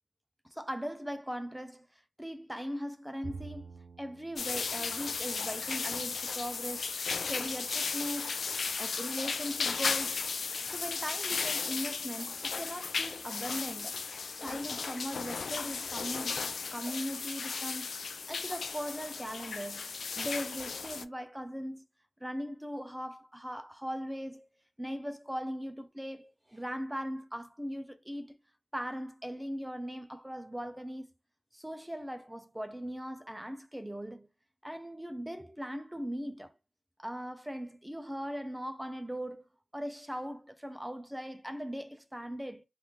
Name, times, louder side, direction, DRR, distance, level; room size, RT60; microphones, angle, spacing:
voice 1, 0.4-1.9 2.2-3.7 4.0-6.9 7.3-8.4 8.8-10.2 10.7-14.0 14.3-16.4 16.7-17.9 18.3-21.8 22.2-24.5 24.8-28.4 28.7-31.1 31.5-34.3 34.6-36.5 37.0-39.4 39.7-42.6, equal, 5° right, 0.4 m, -39 dB
Bowed string instrument, 3.2-6.6, right 4 dB, 85° right, 0.7 m, -49 dB
sound 1, 4.4-21.0, left 5 dB, 70° left, 0.3 m, -35 dB
2.9 x 2.4 x 3.5 m
wide cardioid pair, 145°, 0 cm